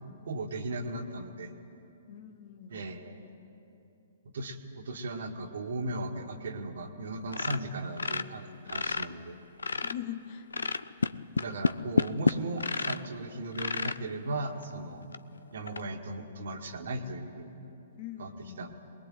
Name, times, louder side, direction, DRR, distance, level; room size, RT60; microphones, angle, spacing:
voice 1, 0.3-1.5 2.7-3.2 4.3-9.4 11.4-15.1 15.5-17.6 18.2-18.7, right 2 dB, 60° right, 5 dB, 1.9 m, -37 dB
voice 2, 2.1-2.9 9.8-10.5 18.0-18.7, left 10 dB, 45° left, 11 dB, 1.3 m, -42 dB
sound 1, 7.3-9.1 9.4-10.1 10.5-13.1 13.5-14.0 14.6-14.7 15.1-15.2 15.7-15.8, left 4 dB, 70° left, 0.6 m, -29 dB
23.0 x 20.5 x 9.3 m, 2.9 s
figure-of-eight pair, 115°, 0 cm